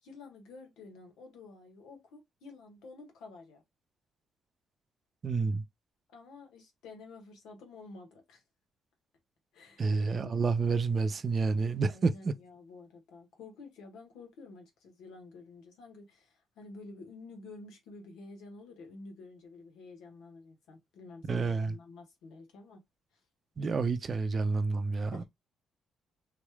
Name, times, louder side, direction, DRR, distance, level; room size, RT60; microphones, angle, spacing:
voice 1, 0.0-3.6 6.1-8.4 9.5-11.2 11.8-22.8 23.1-23.2 25.1-25.2, left 3 dB, 85° left, 1.5 m, -50 dB
voice 2, 5.2-5.6 9.8-12.3 21.3-21.8 23.6-25.2, right 4 dB, 40° right, 0.5 m, -29 dB
4.0 x 3.2 x 2.3 m
cardioid pair, 90°, 0 cm